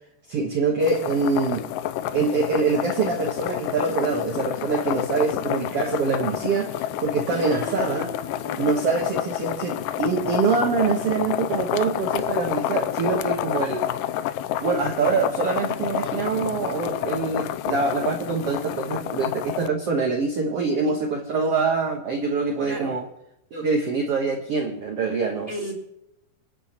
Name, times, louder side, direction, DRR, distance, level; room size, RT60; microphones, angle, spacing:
voice 1, 0.3-1.7 2.1-8.1 8.6-13.9 14.6-23.1 23.5-25.7, right 4 dB, 55° right, 2 dB, 1.8 m, -25 dB
sound 1, 0.8-19.7, left 12 dB, 80° left, 2.1 m, -29 dB
voice 2, 7.3-8.9 20.8-21.0 22.7-22.9 25.5-25.7, right 2 dB, 10° left, 0 dB, 2.8 m, -35 dB
26.5 x 9.6 x 3.0 m, 0.83 s
omnidirectional pair, 4.2 m